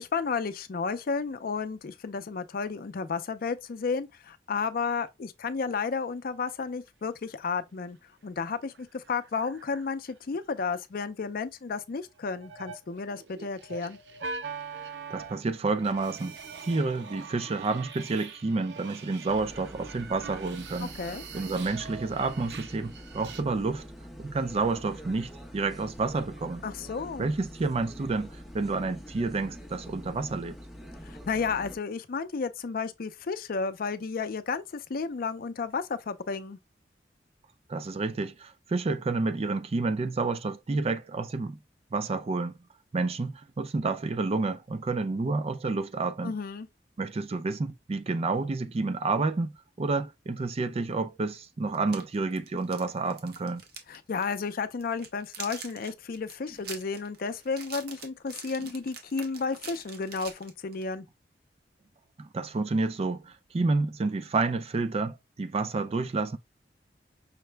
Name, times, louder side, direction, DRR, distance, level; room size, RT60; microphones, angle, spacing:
voice 1, 0.0-8.0 8.2-14.0 20.8-21.2 26.6-27.3 31.0-36.6 46.2-46.7 53.9-61.0, left 5 dB, 55° left, 0.5 m, -32 dB
sound 1, 7.2-7.7 8.0-8.1 8.3-10.2 12.2-23.4, right 5 dB, 90° right, 0.6 m, -43 dB
voice 2, 15.1-16.4 16.6-20.9 21.3-23.9 24.2-26.6 27.2-30.6 37.7-41.6 41.9-42.6 42.9-46.3 47.0-49.5 49.8-53.6 58.6-58.7 62.2-66.4, right 3 dB, 35° right, 0.4 m, -29 dB
sound 2, 19.3-31.8, equal, ahead, 0.8 m, -45 dB
sound 3, 51.7-54.0 54.2-54.4 54.8-60.9, right 5 dB, 60° right, 1.0 m, -44 dB
5.7 x 2.1 x 3.3 m
head